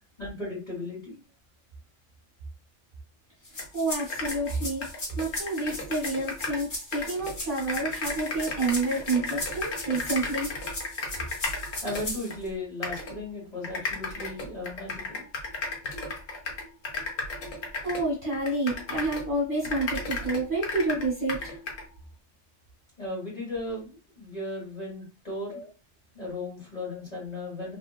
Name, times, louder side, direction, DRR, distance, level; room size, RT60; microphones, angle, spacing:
voice 1, 0.2-1.2 11.8-15.2 23.0-25.6 26.1-27.8, left 2 dB, 35° left, -5 dB, 1.6 m, -36 dB
sound 1, 3.4-12.5, left 1 dB, 55° left, 1.4 m, -38 dB
sound 2, 3.6-3.7 4.0-6.7 6.9-12.4 12.8-13.1 13.6-19.3 19.6-21.8, left 3 dB, 85° left, 1.2 m, -34 dB
voice 2, 3.7-4.8 5.2-10.5 17.8-21.6 25.5-25.6, right 2 dB, 45° right, -3 dB, 1.0 m, -29 dB
2.8 x 2.8 x 2.3 m, 0.33 s
omnidirectional pair, 1.3 m